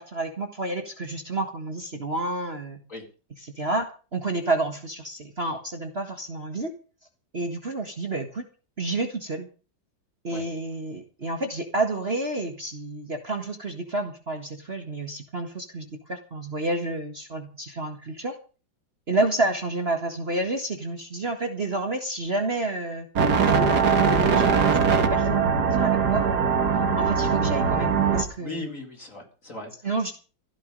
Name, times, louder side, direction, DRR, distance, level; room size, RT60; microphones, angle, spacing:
voice 1, 0.0-2.8 3.6-3.9 4.1-6.7 7.3-8.5 8.8-9.5 10.2-18.3 19.1-23.1 23.4-24.8 25.1-25.5 25.8-26.2 26.9-28.7 29.8-30.1, right 2 dB, 35° right, 5 dB, 1.8 m, -29 dB
sound 1, 23.2-28.2, right 5 dB, 60° right, 2.4 m, -21 dB
voice 2, 28.4-30.0, left 2 dB, 40° left, 1 dB, 4.8 m, -38 dB
15.5 x 12.5 x 5.3 m, 0.36 s
omnidirectional pair, 2.0 m